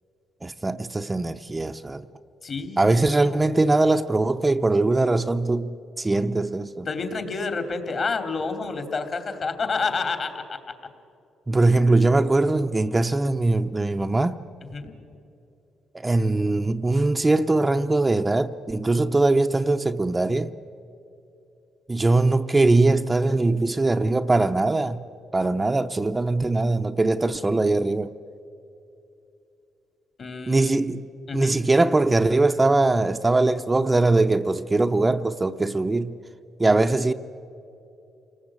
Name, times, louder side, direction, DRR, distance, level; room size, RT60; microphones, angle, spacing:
voice 1, 0.4-2.1 2.8-6.9 11.5-14.4 15.9-20.5 21.9-25.0 25.3-28.1 30.5-31.0 31.3-36.1 36.6-37.1, right 2 dB, 20° right, 0.7 m, -21 dB
voice 2, 2.4-3.4 6.9-10.6 14.7-14.9 30.2-30.7 31.3-31.6, left 4 dB, 45° left, 2.9 m, -29 dB
28.5 x 19.5 x 8.7 m
cardioid pair, 90°, 0 cm